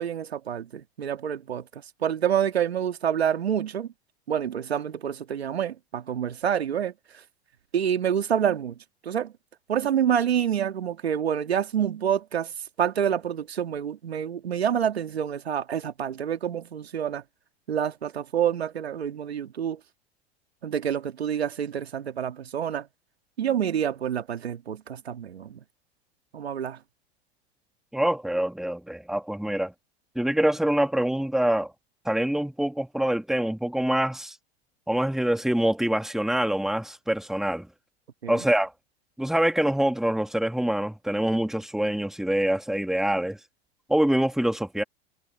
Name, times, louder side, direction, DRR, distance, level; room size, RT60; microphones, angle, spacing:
voice 1, 0.0-1.6 2.0-3.9 4.3-6.9 7.7-8.8 9.0-9.3 9.7-12.5 12.8-17.2 17.7-19.8 20.6-22.9 23.4-25.6 26.3-26.8 38.2-38.4, right 9 dB, 80° right, 2.5 m, -27 dB
voice 2, 27.9-29.7 30.2-31.7 32.1-34.3 34.9-37.7 38.3-38.7 39.2-43.4 43.9-44.8, right 1 dB, ahead, 2.4 m, -25 dB
hypercardioid pair, 95°, 31 cm